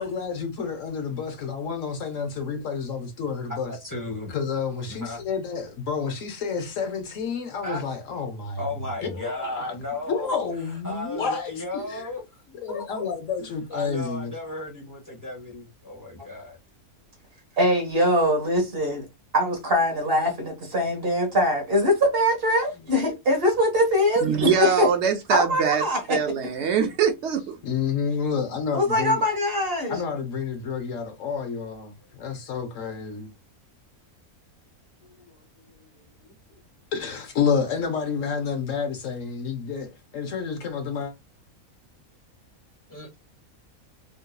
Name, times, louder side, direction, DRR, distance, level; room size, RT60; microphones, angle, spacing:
voice 1, 0.0-3.7 4.3-8.6 9.0-9.7 10.1-12.1 12.5-14.3 26.2-26.3 27.6-29.2 29.9-33.3 36.9-41.1, left 6 dB, 65° left, 1.2 m, -29 dB
voice 2, 2.5-3.0 3.7-4.3 4.9-5.3 7.6-7.8 8.6-10.4 10.7-12.2 12.7-13.1 13.4-16.6 22.8-22.9 35.0-35.7 42.9-43.1, left 2 dB, 15° left, 0.9 m, -35 dB
voice 3, 17.6-19.1 19.3-24.9 25.3-26.5 28.7-30.0, left 1 dB, 45° right, 1.4 m, -22 dB
voice 4, 24.2-25.8 26.1-27.6, right 7 dB, 60° right, 0.9 m, -23 dB
3.8 x 2.7 x 2.2 m
omnidirectional pair, 1.5 m